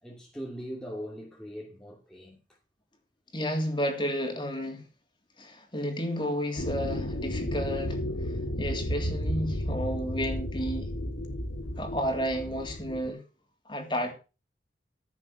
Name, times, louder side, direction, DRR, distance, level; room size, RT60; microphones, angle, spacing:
voice 1, 0.0-2.4, equal, 5° left, 2.6 m, -40 dB
voice 2, 3.3-4.8 5.4-8.0 8.6-10.9 11.8-13.2 13.7-14.1, equal, 25° left, 3.3 m, -31 dB
sound 1, 6.6-13.1, equal, 90° left, 2.2 m, -33 dB
15.0 x 7.3 x 5.9 m
head